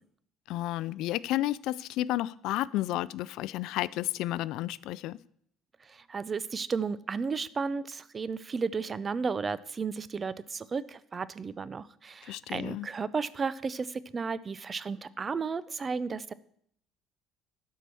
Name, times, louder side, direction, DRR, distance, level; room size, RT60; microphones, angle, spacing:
voice 1, 0.5-5.2 12.2-12.9, left 15 dB, 70° left, 0.3 m, -32 dB
voice 2, 5.9-16.3, right 5 dB, 25° right, 0.4 m, -33 dB
11.5 x 4.7 x 6.9 m
cardioid pair, 120°, 0 cm